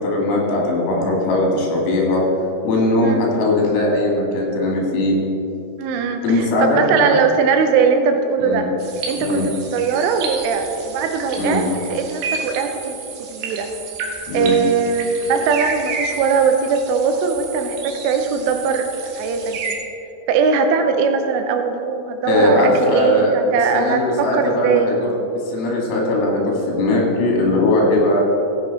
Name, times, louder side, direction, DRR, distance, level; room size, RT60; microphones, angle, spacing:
voice 1, 0.0-2.3 2.6-5.2 6.2-7.2 8.4-8.7 9.2-9.5 11.4-11.7 14.3-14.6 22.2-25.2 25.4-28.2, left 1 dB, 65° left, -2 dB, 4.1 m, -19 dB
voice 2, 5.8-8.7 9.1-11.6 11.9-13.0 13.3-13.7 14.3-19.8 20.3-24.9, right 5 dB, 90° right, 6 dB, 3.3 m, -20 dB
sound 1, 8.8-19.8, right 4 dB, 65° right, 2.6 m, -31 dB
14.5 x 8.0 x 4.1 m, 3.0 s
omnidirectional pair, 5.6 m